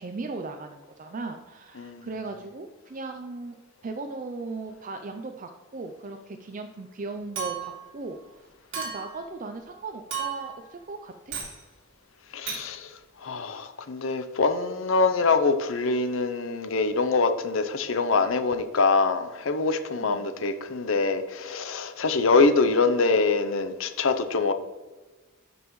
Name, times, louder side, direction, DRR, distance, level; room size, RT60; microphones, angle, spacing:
voice 1, 0.0-3.5 3.8-11.4 20.0-20.3, right 3 dB, 40° right, 0.4 m, -37 dB
voice 2, 1.8-2.1 12.3-12.9 13.2-24.5, left 4 dB, 70° left, 0.7 m, -24 dB
Chink clink, 7.4-7.9 8.7-9.2 10.1-10.6 11.3-11.6 12.5-12.7, right 6 dB, 60° right, 2.5 m, -33 dB
12.0 x 5.4 x 3.1 m
head